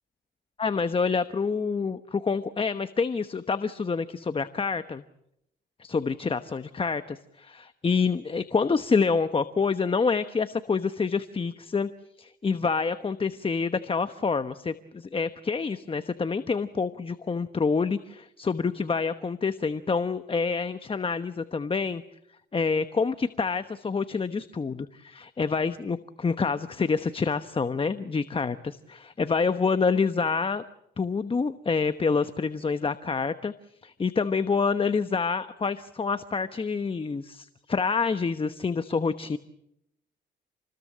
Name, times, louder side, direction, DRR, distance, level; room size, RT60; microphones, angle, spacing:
voice 1, 0.6-5.0 5.8-11.9 12.2-22.0 22.5-30.6 31.0-33.5 33.8-39.4, left 5 dB, 25° left, 11 dB, 1.1 m, -27 dB
28.5 x 20.5 x 7.5 m, 0.79 s
cardioid pair, 90°, 20 cm